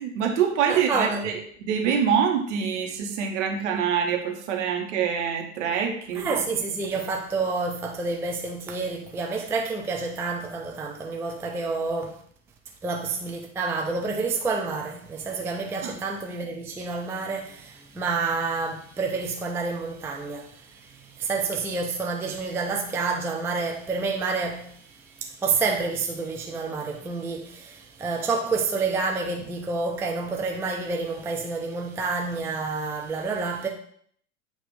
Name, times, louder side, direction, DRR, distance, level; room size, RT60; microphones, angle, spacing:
voice 1, 0.0-6.4 15.8-15.9, right 7 dB, 55° right, 1.3 m, -25 dB
voice 2, 0.7-1.3 6.1-12.2 12.8-33.7, right 4 dB, 5° right, 0.4 m, -29 dB
8.5 x 2.9 x 5.2 m
figure-of-eight pair, 90°, 43 cm